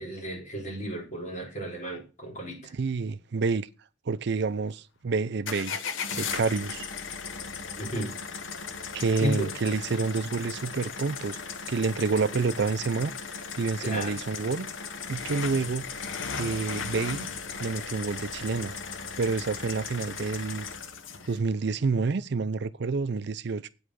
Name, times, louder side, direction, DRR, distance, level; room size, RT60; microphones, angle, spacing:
voice 1, 0.0-2.7 7.8-8.1 9.2-9.5 13.8-14.2, equal, 40° left, 4.6 m, -33 dB
voice 2, 2.7-3.7 4.1-5.8 6.1-6.9 8.9-11.4 11.7-13.1 13.6-14.7 15.1-15.9 16.3-17.3 17.6-18.7 19.2-20.7 21.3-23.7, right 4 dB, 60° right, 0.5 m, -28 dB
sound 1, 5.5-21.4, left 5 dB, 80° left, 0.9 m, -37 dB
8.7 x 5.4 x 6.3 m
head